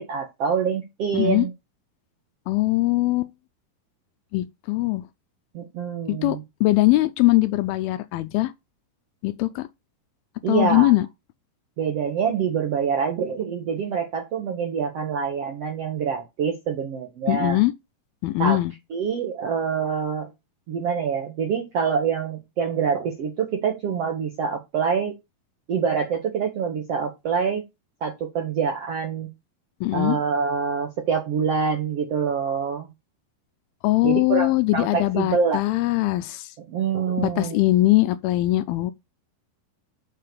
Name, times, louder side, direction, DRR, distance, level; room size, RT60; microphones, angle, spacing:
voice 1, 0.0-1.5 5.5-6.4 10.4-10.9 11.8-17.6 18.4-18.6 18.9-20.3 20.7-25.1 25.7-27.6 28.0-29.3 29.9-32.9 34.0-35.6 36.7-37.6, right 6 dB, 65° right, 1.5 m, -25 dB
voice 2, 1.1-1.5 2.5-3.3 4.3-5.1 6.1-8.5 9.2-9.7 10.5-11.1 17.3-17.7 18.2-18.7 29.8-30.2 33.8-36.5 37.2-38.9, left 18 dB, 80° left, 2.3 m, -21 dB
7.5 x 4.7 x 6.8 m
omnidirectional pair, 4.6 m